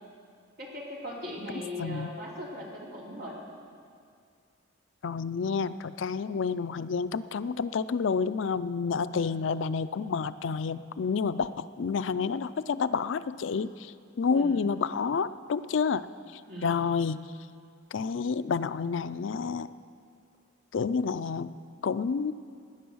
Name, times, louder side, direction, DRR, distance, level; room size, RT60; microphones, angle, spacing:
voice 1, 0.6-3.4 9.1-9.4 14.3-14.6 16.5-16.8, equal, 50° right, -4 dB, 3.1 m, -39 dB
voice 2, 1.8-2.1 5.0-13.9 14.2-16.1 16.6-17.2 17.9-19.7 20.7-21.5 21.8-22.3, left 5 dB, 70° left, 14 dB, 0.4 m, -29 dB
17.0 x 10.5 x 6.3 m, 2.2 s
head